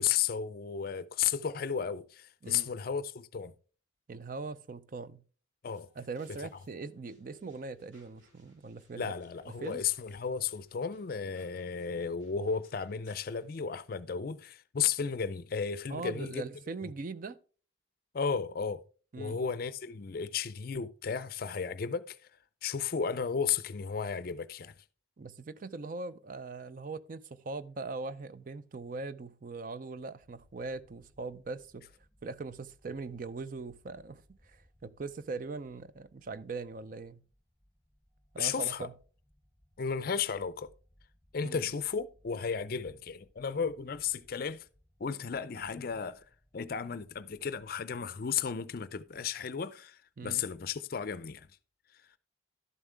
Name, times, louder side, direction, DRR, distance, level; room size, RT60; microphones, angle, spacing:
voice 1, 0.0-3.5 5.6-5.9 9.0-16.4 18.1-18.8 19.2-22.2 22.6-24.7 38.4-38.9 39.8-40.7 41.3-44.6 45.0-46.2 46.5-51.5, left 6 dB, 50° left, 0.4 m, -34 dB
voice 2, 4.1-5.2 6.0-9.1 9.5-9.8 15.9-17.4 19.1-19.4 25.2-31.9 32.2-37.2 38.3-38.9 41.4-41.7 50.2-50.5, right 3 dB, 45° right, 0.4 m, -41 dB
sound 1, 5.7-13.4, equal, 80° right, 4.4 m, -66 dB
sound 2, 30.2-47.7, equal, 15° right, 2.6 m, -67 dB
12.0 x 7.3 x 3.4 m
head